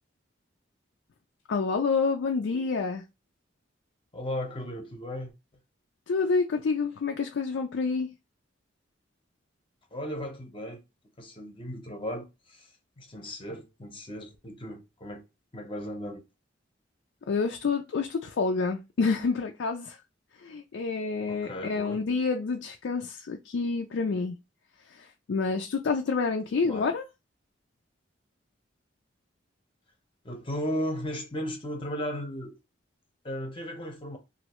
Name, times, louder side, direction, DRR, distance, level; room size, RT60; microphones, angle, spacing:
voice 1, 1.5-3.0 6.1-8.1 17.3-20.0 20.4-24.4 24.9-27.0, left 4 dB, 65° left, 0.4 m, -28 dB
voice 2, 4.1-5.3 9.9-10.8 11.2-12.7 13.0-15.2 15.5-16.2 21.3-22.0 26.6-26.9 30.2-32.5 33.2-34.2, equal, 25° left, 0.7 m, -36 dB
3.1 x 2.6 x 2.9 m
head